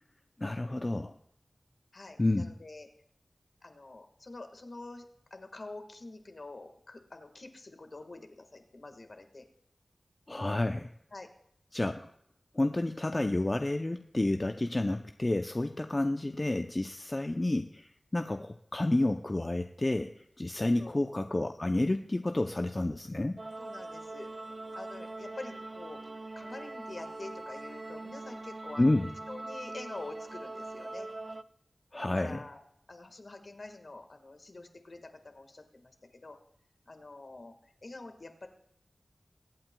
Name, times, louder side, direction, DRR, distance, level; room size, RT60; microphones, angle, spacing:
voice 1, 0.4-1.1 2.2-2.5 10.3-10.9 11.7-12.1 12.5-23.4 28.8-29.1 31.9-32.4, left 2 dB, 30° left, 6 dB, 0.5 m, -30 dB
voice 2, 1.9-2.9 3.6-5.0 5.3-9.5 11.1-11.3 20.5-21.0 23.6-24.3 24.7-26.0 26.3-28.9 29.3-31.1 32.0-32.6 32.9-35.9 36.2-36.4 36.9-38.5, left 2 dB, 55° left, 6 dB, 1.5 m, -46 dB
sound 1, 23.4-31.4, right 2 dB, 40° right, 0.4 m, -42 dB
23.0 x 8.8 x 2.2 m, 0.73 s
wide cardioid pair, 65°, 0 cm